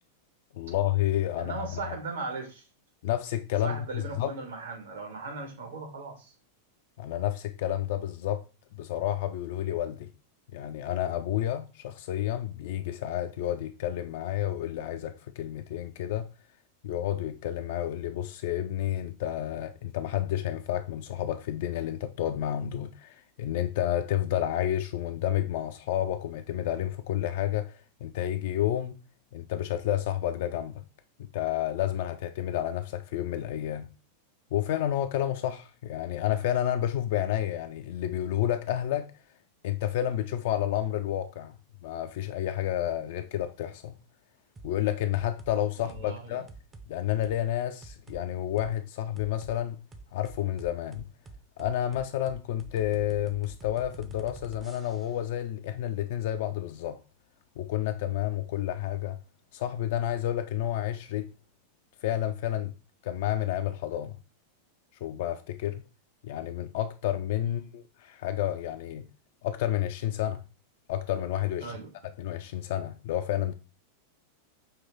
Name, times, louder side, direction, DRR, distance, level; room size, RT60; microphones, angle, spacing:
voice 1, 0.5-1.7 3.0-4.3 7.0-8.4 8.7-10.1 10.5-16.3 16.8-29.0 29.3-30.8 31.3-33.9 34.5-39.1 39.6-41.5 41.8-43.9 44.6-46.5 46.9-49.8 50.1-51.0 51.6-57.0 57.6-59.2 59.5-61.3 62.0-62.7 63.0-64.1 65.0-65.8 66.2-69.0 69.4-70.4 70.9-71.7 72.2-73.5, left 12 dB, 50° left, 0.3 m, -30 dB
voice 2, 1.4-2.6 3.6-6.3 45.8-46.4 67.4-67.7 71.6-71.9, right 3 dB, 65° right, 1.3 m, -38 dB
sound 1, 44.6-44.7 45.1-45.5 45.9-46.1 46.5-46.9 47.2-47.4 47.8-48.2 48.6-48.7 49.2-49.6 49.9-55.2, right 3 dB, 20° right, 0.6 m, -47 dB
5.5 x 2.7 x 3.6 m
figure-of-eight pair, 90°, 0 cm